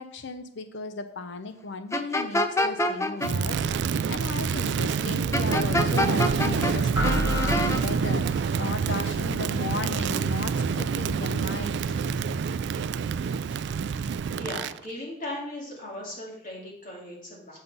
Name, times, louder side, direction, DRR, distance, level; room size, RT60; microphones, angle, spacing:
voice 1, 0.0-12.0, left 3 dB, 65° left, 9 dB, 0.6 m, -36 dB
sound 1, 1.9-3.3 5.3-6.7 7.0-7.8, left 1 dB, 15° left, 0.5 m, -26 dB
Crackle, 3.2-14.8, right 6 dB, 65° right, 0.3 m, -27 dB
sound 2, 6.9-8.5, equal, 15° right, 1.0 m, -29 dB
voice 2, 13.4-17.6, left 1 dB, 45° left, -4 dB, 2.4 m, -39 dB
8.0 x 5.5 x 5.4 m, 0.72 s
head